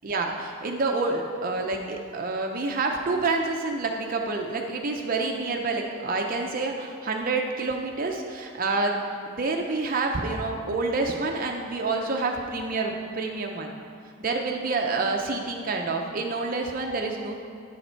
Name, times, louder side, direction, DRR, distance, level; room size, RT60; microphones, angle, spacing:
voice 1, 0.0-13.7 14.2-17.3, right 3 dB, 40° right, 2 dB, 0.5 m, -28 dB
9.7 x 6.7 x 4.5 m, 2.5 s
head